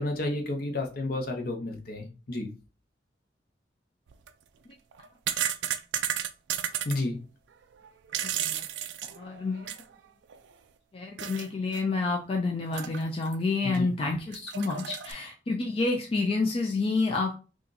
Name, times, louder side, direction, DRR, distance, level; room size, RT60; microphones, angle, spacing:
voice 1, 0.0-2.5 6.8-7.2 13.6-13.9, left 2 dB, 55° left, 0.8 m, -31 dB
sound 1, 4.1-4.3 4.9-7.0 7.8-10.0 10.3-10.4 11.2-11.5 11.7-11.8 12.7-13.4 13.7-13.8 14.3-15.1, right 10 dB, 85° right, 0.3 m, -33 dB
voice 2, 8.2-8.6 9.0-9.7 10.9-17.4, left 3 dB, 35° left, 0.4 m, -29 dB
2.8 x 2.4 x 3.8 m
head